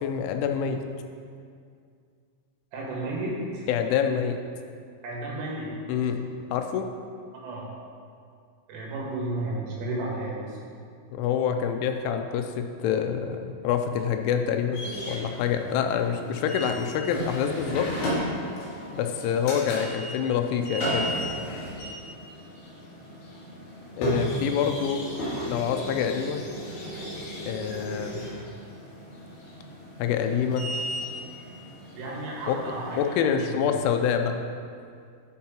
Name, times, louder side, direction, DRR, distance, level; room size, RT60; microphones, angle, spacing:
voice 1, 0.0-0.8 3.7-4.4 5.9-6.9 11.1-17.9 18.9-21.1 24.0-25.1 25.5-26.4 27.5-28.3 30.0-30.7 32.5-32.6 33.0-34.4, left 8 dB, 85° left, 6 dB, 3.0 m, -26 dB
voice 2, 2.7-3.7 5.0-5.7 7.4-7.7 8.7-10.6 28.2-28.3 31.9-33.9, right 2 dB, 90° right, -4 dB, 4.2 m, -33 dB
sound 1, 14.7-33.1, equal, 60° left, 3.5 m, -35 dB
12.0 x 4.7 x 4.3 m, 2.3 s
omnidirectional pair, 5.5 m